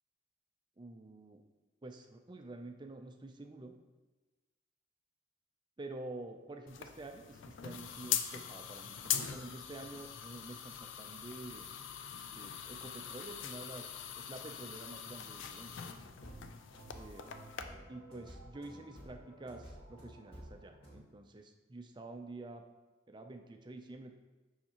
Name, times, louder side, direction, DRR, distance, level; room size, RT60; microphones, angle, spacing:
voice 1, 0.8-1.4 1.8-3.7 5.8-11.7 12.3-16.1 16.9-17.2 17.9-22.6 23.1-24.1, right 2 dB, 20° right, 5 dB, 0.4 m, -48 dB
sound 1, 6.7-17.6, left 9 dB, 65° left, 0.4 m, -42 dB
sound 2, 16.0-21.0, right 1 dB, 30° left, 1.6 m, -53 dB
6.8 x 5.7 x 2.9 m, 1.2 s
head